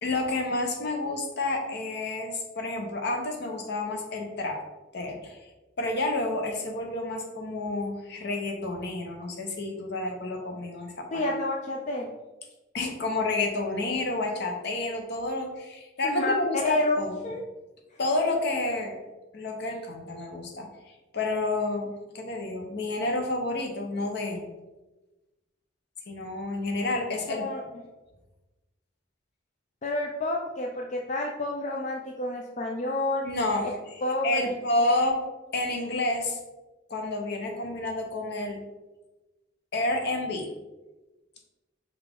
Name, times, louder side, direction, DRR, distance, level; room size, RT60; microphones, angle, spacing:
voice 1, 0.0-4.6 4.9-5.4 5.8-11.2 12.7-17.2 18.0-19.0 19.3-20.7 21.1-24.4 26.1-27.7 33.2-33.7 34.2-35.2 35.5-36.4 36.9-38.6 39.7-40.5, left 2 dB, 60° left, 2 dB, 0.8 m, -29 dB
voice 2, 11.1-12.1 16.0-17.4 27.3-27.6 29.8-33.2 34.0-35.0, left 1 dB, 40° left, 0 dB, 0.4 m, -30 dB
5.4 x 2.4 x 3.6 m, 1.1 s
head